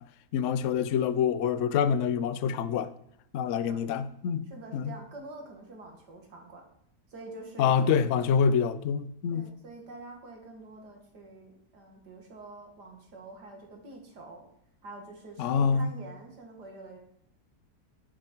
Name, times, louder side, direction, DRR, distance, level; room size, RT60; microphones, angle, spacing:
voice 1, 0.3-2.9 3.3-4.5 4.7-4.9 7.6-9.5 15.4-16.0, left 7 dB, 60° left, 0.9 m, -26 dB
voice 2, 4.5-6.6 7.1-7.7 9.3-14.4 14.8-17.0, right 2 dB, 85° right, 2.7 m, -46 dB
10.5 x 8.8 x 4.6 m
omnidirectional pair, 1.7 m